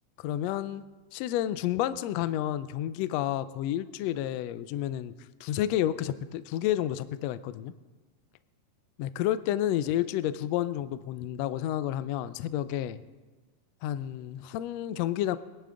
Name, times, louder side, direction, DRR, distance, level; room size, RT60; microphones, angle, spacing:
voice 1, 0.2-0.8 1.1-5.1 5.4-7.7 9.0-13.0 13.8-15.4, left 12 dB, 90° left, 14 dB, 1.4 m, -30 dB
21.5 x 10.5 x 3.8 m, 1.3 s
omnidirectional pair, 3.6 m